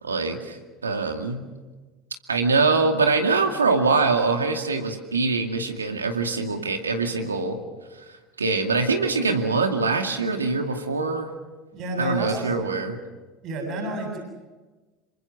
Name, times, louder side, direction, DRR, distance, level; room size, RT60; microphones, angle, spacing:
voice 1, 0.0-1.4 2.3-7.6 8.4-11.3 12.0-13.0, right 4 dB, 90° right, 4 dB, 2.3 m, -23 dB
voice 2, 11.7-12.5 13.4-14.2, right 2 dB, 50° right, 2 dB, 7.6 m, -30 dB
27.5 x 24.0 x 6.3 m, 1.2 s
hypercardioid pair, 75°, 0 cm